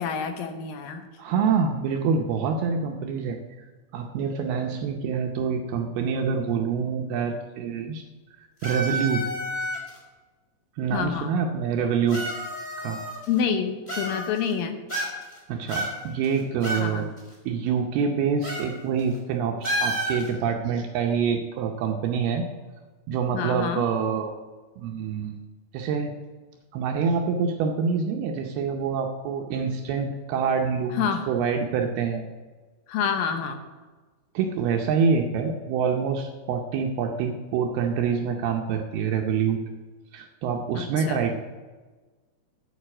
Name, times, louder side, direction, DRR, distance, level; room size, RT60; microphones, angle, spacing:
voice 1, 0.0-1.1 10.9-11.3 13.3-14.8 16.7-17.1 23.3-23.8 30.9-31.3 32.9-33.6 40.8-41.2, left 7 dB, 75° left, 7 dB, 2.3 m, -28 dB
voice 2, 1.2-3.4 3.9-8.0 8.6-9.2 10.8-12.2 12.8-13.0 15.5-17.1 17.5-22.5 23.1-24.3 24.8-25.4 25.7-26.1 26.7-32.2 34.3-39.6 40.1-41.3, right 6 dB, 80° right, 3 dB, 2.7 m, -26 dB
sound 1, 8.6-10.0 10.9-11.0 12.1-13.4 13.9-14.5 14.9-15.4 15.7-16.9 17.2-17.3 18.4-18.7 19.0-19.2 19.6-20.3, right 1 dB, 10° left, 3.9 m, -30 dB
8.3 x 8.0 x 8.6 m, 1.3 s
omnidirectional pair, 4.7 m